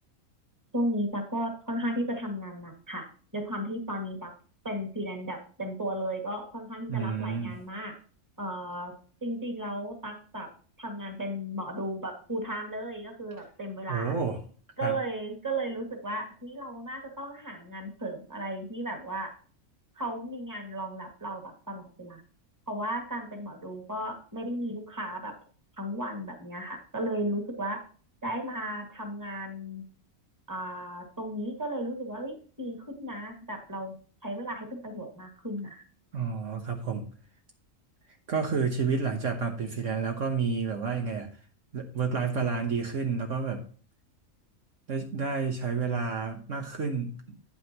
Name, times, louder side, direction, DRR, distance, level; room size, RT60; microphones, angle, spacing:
voice 1, 0.7-3.1 3.3-4.3 4.6-7.9 8.4-8.9 9.2-10.5 10.8-14.2 14.8-19.3 20.0-22.2 22.7-25.3 25.8-27.8 28.2-29.9 30.5-34.0 34.2-35.8, right 1 dB, 15° right, 3 dB, 2.0 m, -35 dB
voice 2, 6.9-7.5 13.9-14.4 14.8-15.0 36.1-37.0 38.3-41.3 41.7-43.6 44.9-47.4, right 5 dB, 60° right, 3 dB, 1.5 m, -30 dB
9.5 x 8.9 x 3.0 m, 0.40 s
omnidirectional pair, 1.5 m